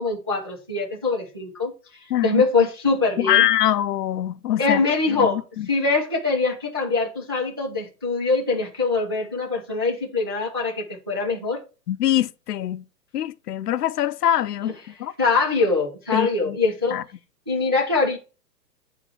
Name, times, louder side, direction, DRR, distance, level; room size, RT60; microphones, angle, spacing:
voice 1, 0.0-1.7 2.2-3.5 4.6-5.4 5.7-11.6 14.6-14.7 15.2-17.0 17.5-18.2, left 3 dB, 15° right, 0.4 m, -23 dB
voice 2, 2.1-2.4 3.2-4.8 5.1-5.7 11.9-12.8 13.1-14.7 15.0-15.1 16.1-16.6 16.9-17.0, left 12 dB, 65° left, 0.7 m, -23 dB
9.0 x 3.6 x 4.7 m
hypercardioid pair, 150°, 50 cm